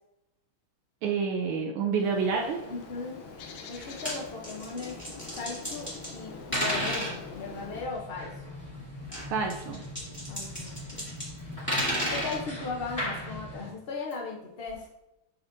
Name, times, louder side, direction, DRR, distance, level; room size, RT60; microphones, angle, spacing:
voice 1, 1.0-2.6 9.3-9.8, right 5 dB, 80° right, 1 dB, 1.6 m, -28 dB
Bird, 1.9-7.9, left 4 dB, 75° left, 1.5 m, -45 dB
sound 1, 2.3-13.7, left 1 dB, 25° left, 2.8 m, -42 dB
voice 2, 2.7-3.2 3.7-5.0 5.3-8.4 10.3-11.1 12.1-14.9, left 4 dB, 60° left, -1 dB, 0.6 m, -37 dB
sound 2, 3.8-4.2 4.4-6.2 6.5-7.1 9.0-11.3 11.5-12.4 14.1-14.2 14.7-14.8, equal, 5° left, 2.3 m, -32 dB
7.1 x 6.4 x 2.7 m, 0.89 s
omnidirectional pair, 2.3 m